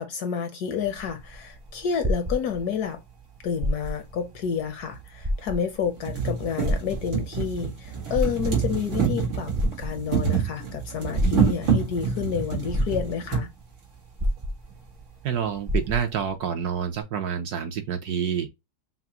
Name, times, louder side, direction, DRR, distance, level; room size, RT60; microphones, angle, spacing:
voice 1, 0.0-3.0 3.4-13.5, left 7 dB, 70° left, 1.0 m, -30 dB
sound 1, 0.8-2.9 3.5-4.2 4.6-4.7 5.2-5.9 6.6-7.5 8.0-8.8 9.6-10.3 11.1-11.8 12.4-12.5 12.7-13.4 14.2-15.0 15.3-15.4 15.7-16.3 17.0-17.1, equal, 50° right, 0.4 m, -28 dB
sound 2, 3.9-4.0 5.0-5.1 5.5-5.6 5.9-13.5 14.4-14.5 14.7-14.8, right 6 dB, 85° right, 2.5 m, -27 dB
voice 2, 15.2-18.5, right 8 dB, 70° right, 1.0 m, -28 dB
5.8 x 2.0 x 2.8 m
omnidirectional pair, 2.1 m